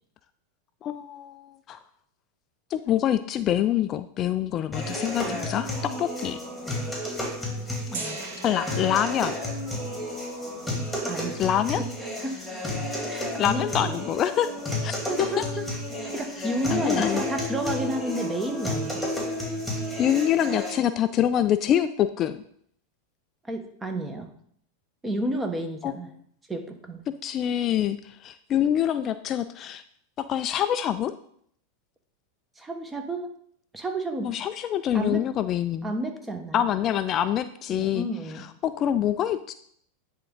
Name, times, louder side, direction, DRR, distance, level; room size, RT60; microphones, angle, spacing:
voice 1, 0.8-1.8 2.7-6.4 8.0-8.1 8.4-9.3 11.4-11.8 13.4-14.5 14.8-15.4 16.4-17.2 20.0-22.4 25.8-25.9 27.2-29.8 30.2-31.1 34.2-35.9 36.5-38.1 38.4-39.5, left 10 dB, 35° left, 12 dB, 0.3 m, -25 dB
sound 1, 4.7-20.7, left 1 dB, ahead, 2.6 m, -31 dB
voice 2, 7.9-8.4 11.1-11.3 11.8-11.9 12.2-12.4 13.1-13.9 15.1-15.7 16.0-19.1 23.4-24.3 25.0-26.1 26.5-27.0 32.6-33.3 33.7-34.3 34.9-35.2 35.8-36.7 37.7-38.4, right 1 dB, 15° right, 5 dB, 1.2 m, -31 dB
Gong, 7.9-13.8, right 4 dB, 65° right, 1.4 m, -44 dB
10.5 x 3.6 x 3.8 m, 0.65 s
hypercardioid pair, 95°, 0 cm